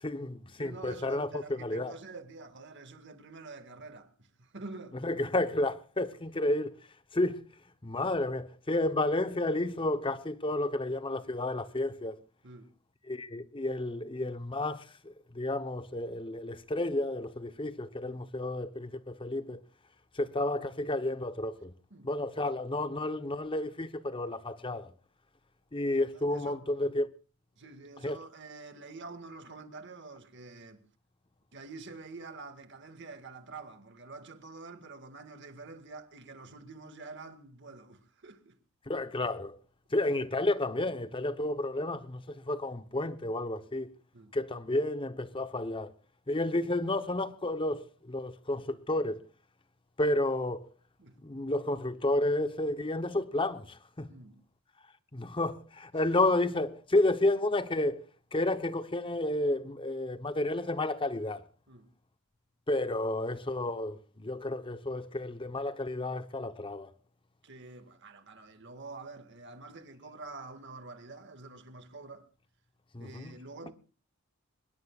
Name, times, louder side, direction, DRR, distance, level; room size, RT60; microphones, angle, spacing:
voice 1, 0.0-1.9 5.0-6.8 7.1-7.4 7.8-12.2 13.1-19.6 20.1-21.7 22.0-24.9 25.7-27.1 28.0-28.2 38.9-39.6 39.9-43.9 44.3-45.9 46.3-49.2 50.0-50.7 51.2-54.1 55.1-58.0 58.3-61.4 62.7-66.9 72.9-73.3, left 2 dB, 25° left, 0.9 m, -31 dB
voice 2, 0.6-5.0 12.4-12.7 18.1-18.2 21.9-22.1 26.3-26.6 27.6-30.9 31.5-38.6 44.1-44.4 51.0-51.2 54.1-54.4 56.0-56.1 61.7-61.9 67.4-72.3 73.0-73.7, right 3 dB, 60° right, 2.0 m, -47 dB
25.0 x 21.5 x 2.4 m
head